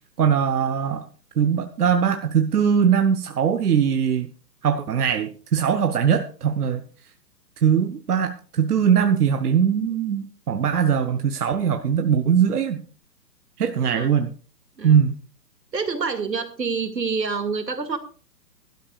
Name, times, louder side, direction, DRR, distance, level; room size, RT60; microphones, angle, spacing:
voice 1, 0.2-1.0 1.4-4.3 4.6-6.8 7.6-12.8 13.6-14.3 14.8-15.1, right 7 dB, 65° right, 8 dB, 1.1 m, -21 dB
voice 2, 15.7-18.0, right 5 dB, 85° right, 8 dB, 2.3 m, -27 dB
20.0 x 12.5 x 2.4 m, 0.39 s
figure-of-eight pair, 130°, 49 cm